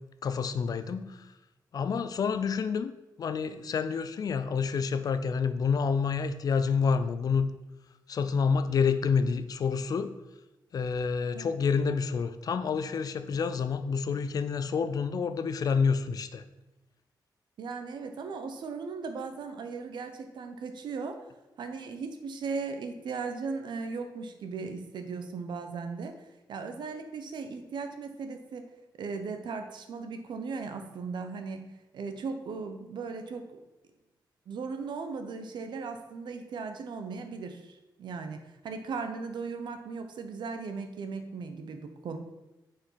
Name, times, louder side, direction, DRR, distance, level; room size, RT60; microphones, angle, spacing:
voice 1, 0.2-1.2 1.7-2.9 3.2-7.5 8.1-10.1 10.7-16.4, left 5 dB, 50° left, 11 dB, 0.6 m, -28 dB
voice 2, 17.6-21.3 21.6-28.7 29.0-33.6 34.5-42.2, right 4 dB, 75° right, 7 dB, 1.1 m, -37 dB
8.7 x 5.0 x 5.8 m, 1.0 s
wide cardioid pair, 150°, 8 cm